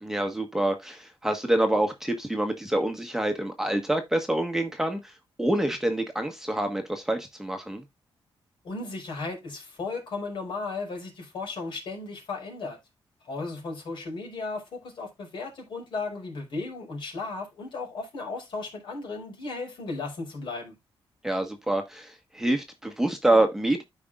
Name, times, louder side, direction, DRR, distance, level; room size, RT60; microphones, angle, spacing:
voice 1, 0.0-5.1 5.4-7.8 21.2-23.8, right 1 dB, 5° right, 1.3 m, -26 dB
voice 2, 8.6-12.8 13.2-20.8, left 3 dB, 60° left, 4.7 m, -35 dB
13.0 x 5.1 x 2.4 m
cardioid pair, 125°, 9 cm